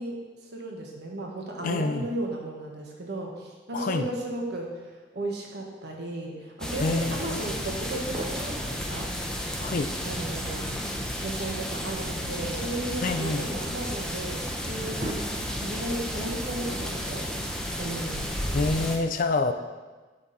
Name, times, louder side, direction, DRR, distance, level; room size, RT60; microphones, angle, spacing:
voice 1, 0.0-9.1 10.0-17.5 17.8-18.4, right 1 dB, 65° right, -1 dB, 1.4 m, -35 dB
voice 2, 1.6-2.1 3.7-4.0 6.8-7.4 9.6-9.9 13.0-13.5 18.5-19.5, left 3 dB, 50° left, 8 dB, 0.4 m, -27 dB
sound 1, 6.6-19.0, equal, 5° left, 0.7 m, -32 dB
sound 2, 7.9-8.7 10.1-11.0 12.2-13.6 14.2-14.3 14.6-15.8, right 1 dB, 30° right, 0.8 m, -39 dB
7.8 x 5.9 x 4.1 m, 1.3 s
head